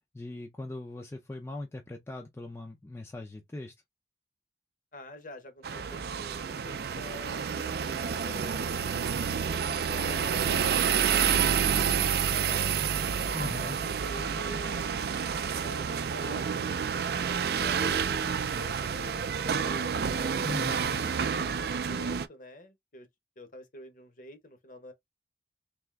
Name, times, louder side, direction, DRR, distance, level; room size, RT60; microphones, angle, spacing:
voice 1, 0.1-3.7 13.3-13.8 20.4-21.0, left 2 dB, 15° left, 0.4 m, -39 dB
voice 2, 4.9-9.1 9.7-13.1 13.6-16.7 17.3-20.4 20.7-23.1 23.4-24.9, left 1 dB, 45° left, 0.9 m, -47 dB
sound 1, 5.6-22.3, right 7 dB, 60° right, 0.4 m, -29 dB
3.5 x 2.9 x 3.4 m
head